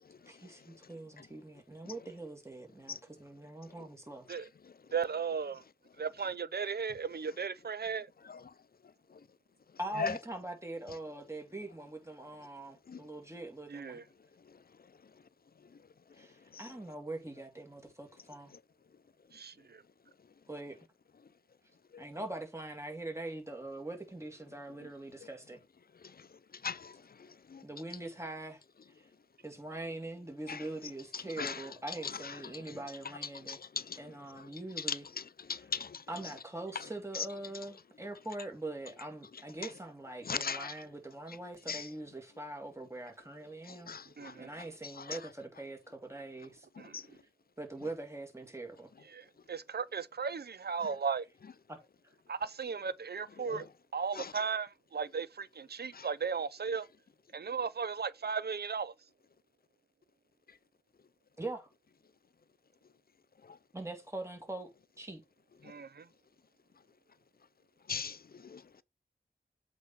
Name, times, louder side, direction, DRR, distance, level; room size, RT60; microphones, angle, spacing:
voice 1, 0.3-4.3 9.8-14.0 16.1-18.5 20.5-20.8 22.0-25.6 27.6-28.6 28.9-29.1 29.4-33.6 33.9-35.1 35.5-35.7 36.1-43.9 44.4-46.7 47.6-48.9 51.7-51.8 52.0-52.1 61.4-61.7 63.7-64.7 65.0-65.2, right 2 dB, 15° right, 2.8 m, -43 dB
voice 2, 4.9-5.6 6.0-8.1 13.7-14.0 19.3-19.8 44.2-44.5 46.8-47.0 49.1-51.3 52.3-53.7 53.9-56.9 57.3-58.9 65.6-66.1, right 6 dB, 75° right, 0.6 m, -36 dB
voice 3, 35.5-36.0 40.3-40.7 41.7-41.8 43.9-44.3 46.9-47.0 54.2-54.3 56.0-56.1 67.9-68.2 68.5-68.8, left 5 dB, 65° left, 0.5 m, -36 dB
8.0 x 4.4 x 4.0 m
wide cardioid pair, 50°, 17 cm